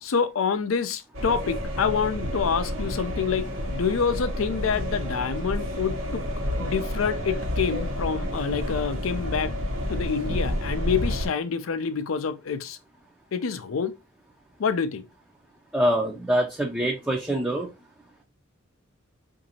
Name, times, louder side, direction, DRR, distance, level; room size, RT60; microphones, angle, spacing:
voice 1, 0.0-6.2 6.6-9.5 9.9-12.8 13.3-13.9 14.6-15.0, left 6 dB, 85° left, 0.5 m, -27 dB
sound 1, 1.1-11.3, left 1 dB, 80° right, 1.0 m, -30 dB
voice 2, 15.7-17.7, equal, 5° right, 0.5 m, -24 dB
3.9 x 2.6 x 2.7 m
head